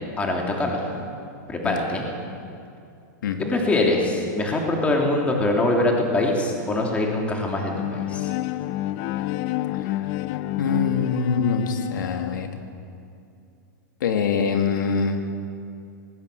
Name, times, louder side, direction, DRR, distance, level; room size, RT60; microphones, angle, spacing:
voice 1, 0.2-0.9 1.5-2.1 3.4-8.3, left 2 dB, 10° left, 0 dB, 3.2 m, -23 dB
Bowed string instrument, 7.7-12.6, left 15 dB, 40° left, 0.6 m, -29 dB
voice 2, 10.6-12.6 14.0-15.2, left 5 dB, 80° left, 5 dB, 2.2 m, -24 dB
19.5 x 17.5 x 8.1 m, 2.5 s
supercardioid pair, 155°, 10 cm